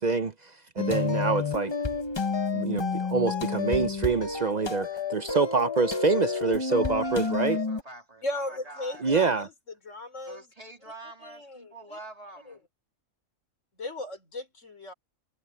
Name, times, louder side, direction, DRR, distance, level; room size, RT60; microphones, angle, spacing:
voice 1, 0.0-1.7 2.5-7.6 9.0-9.5, right 4 dB, 45° right, 0.6 m, -26 dB
sound 1, 0.8-7.8, left 4 dB, 25° left, 0.7 m, -30 dB
voice 2, 6.7-9.0 10.2-12.6, right 2 dB, 30° right, 2.7 m, -46 dB
voice 3, 8.2-9.5 9.8-10.5 11.2-12.0 12.5-12.6 13.8-14.9, left 1 dB, 65° left, 4.1 m, -37 dB
omnidirectional pair, 1.4 m